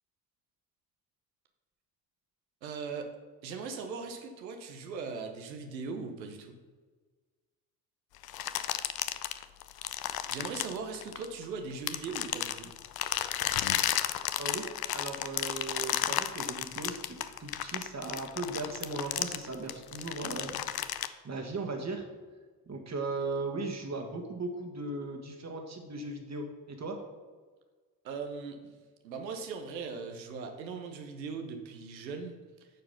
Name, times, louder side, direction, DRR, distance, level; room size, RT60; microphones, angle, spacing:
voice 1, 2.6-3.1 3.4-6.5 9.8-10.0 10.3-12.7 28.0-28.7 29.0-32.7, right 5 dB, 85° right, 5 dB, 0.9 m, -39 dB
sound 1, 8.2-11.4 11.9-21.1, left 12 dB, 50° left, 0.6 m, -33 dB
voice 2, 14.4-17.0 17.4-22.0 22.7-27.0, right 3 dB, 35° right, 3 dB, 1.7 m, -37 dB
9.2 x 4.8 x 5.5 m, 1.4 s
figure-of-eight pair, 45°, 50 cm